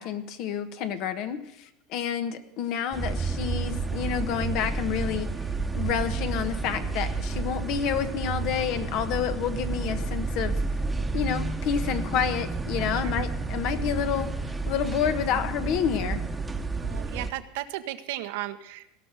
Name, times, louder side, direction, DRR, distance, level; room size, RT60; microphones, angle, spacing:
voice 1, 0.0-5.3 5.7-10.6 11.1-14.3 14.7-16.2, left 8 dB, 60° left, 10 dB, 1.3 m, -29 dB
sound 1, 2.9-17.3, right 4 dB, 10° right, 1.1 m, -30 dB
voice 2, 16.8-18.9, right 15 dB, 75° right, 9 dB, 1.0 m, -35 dB
17.0 x 5.9 x 9.5 m, 0.82 s
supercardioid pair, 115°, 0 cm